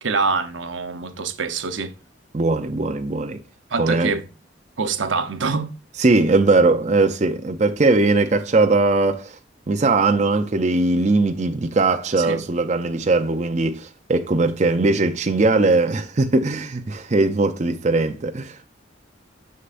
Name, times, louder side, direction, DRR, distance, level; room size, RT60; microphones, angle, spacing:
voice 1, 0.0-1.9 3.7-4.2 4.8-5.7 12.2-12.4, right 4 dB, 85° right, 0.9 m, -25 dB
voice 2, 2.3-3.4 3.8-4.1 6.0-9.4 9.7-18.6, right 3 dB, 35° right, 0.5 m, -20 dB
6.8 x 6.5 x 2.5 m
head